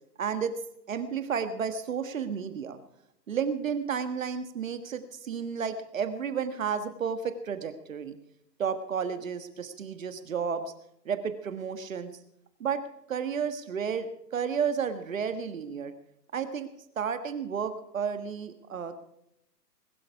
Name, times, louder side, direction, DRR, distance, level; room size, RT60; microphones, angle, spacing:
voice 1, 0.2-0.5 0.9-2.8 3.3-8.1 8.6-10.7 11.0-12.1 12.6-12.8 13.1-15.9 16.3-16.7 16.9-18.9, right 7 dB, 50° right, 10 dB, 1.5 m, -32 dB
21.0 x 12.0 x 4.8 m, 0.77 s
figure-of-eight pair, 145°, 50 cm